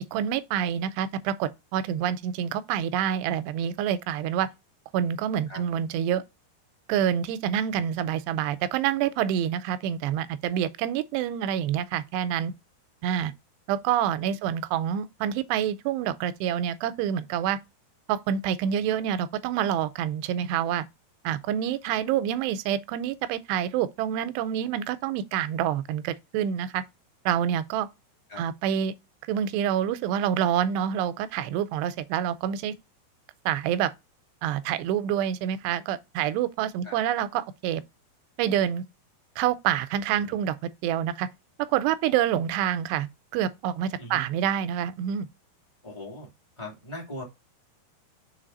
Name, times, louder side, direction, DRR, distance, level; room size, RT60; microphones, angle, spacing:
voice 1, 0.1-4.5 4.9-6.2 6.9-12.5 13.0-13.3 13.7-17.6 18.1-20.9 21.2-26.8 27.3-27.9 28.4-28.9 29.3-32.7 33.5-33.9 34.4-37.8 38.4-38.8 39.4-40.6 40.8-41.3 41.6-45.3, right 10 dB, 90° right, 2.7 m, -27 dB
voice 2, 45.8-46.3 46.6-47.2, left 1 dB, 15° left, 1.0 m, -39 dB
6.4 x 4.1 x 3.8 m
omnidirectional pair, 4.8 m